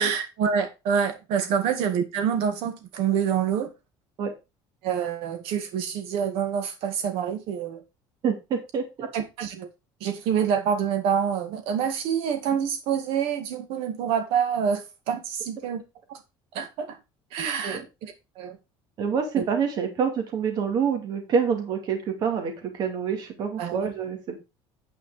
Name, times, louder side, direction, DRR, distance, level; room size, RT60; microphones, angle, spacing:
voice 1, 0.0-3.7 4.8-7.8 9.1-9.7 10.0-15.8 16.5-17.0 17.3-18.6 19.4-19.5 23.6-23.9, right 7 dB, 65° right, 2.0 m, -27 dB
voice 2, 8.2-9.1 17.6-17.8 19.0-24.4, right 6 dB, 40° right, 2.4 m, -27 dB
9.4 x 5.1 x 5.0 m
cardioid pair, 165°, 10 cm